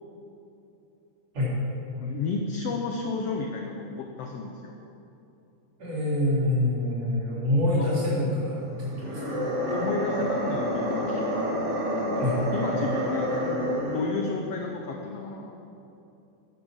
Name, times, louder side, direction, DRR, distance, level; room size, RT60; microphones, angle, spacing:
voice 1, 2.0-4.7 7.7-7.9 9.7-11.2 12.5-13.3 13.9-15.6, left 4 dB, 75° left, 2 dB, 1.5 m, -32 dB
voice 2, 5.8-9.2 12.2-12.4, left 1 dB, 55° right, -7 dB, 4.5 m, -26 dB
sound 1, 8.9-14.2, equal, 35° right, 1.4 m, -28 dB
9.7 x 9.4 x 6.4 m, 2.8 s
omnidirectional pair, 3.6 m